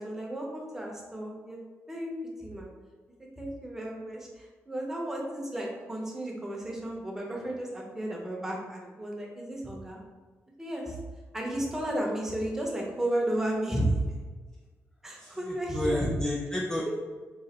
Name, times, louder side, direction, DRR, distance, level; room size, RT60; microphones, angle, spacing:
voice 1, 0.0-1.6 1.9-2.1 2.4-2.7 3.2-10.0 10.6-11.0 11.3-13.9 15.0-16.1, right 1 dB, 10° right, -2 dB, 0.7 m, -33 dB
voice 2, 15.2-17.0, left 1 dB, 10° left, -2 dB, 0.3 m, -31 dB
3.8 x 2.5 x 4.2 m, 1.4 s
wide cardioid pair, 175°, 5 cm